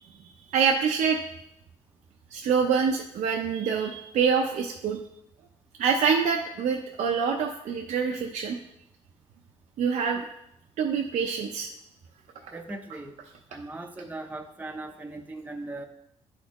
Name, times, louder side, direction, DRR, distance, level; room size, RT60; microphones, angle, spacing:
voice 1, 0.5-1.3 2.3-5.0 5.8-8.6 9.8-10.3 10.8-11.7 12.4-12.6, right 6 dB, 75° right, 2 dB, 0.5 m, -25 dB
voice 2, 12.5-13.2 13.5-15.9, right 2 dB, 15° right, 3 dB, 0.6 m, -39 dB
10.5 x 4.2 x 3.0 m, 0.79 s
cardioid pair, 90°, 13 cm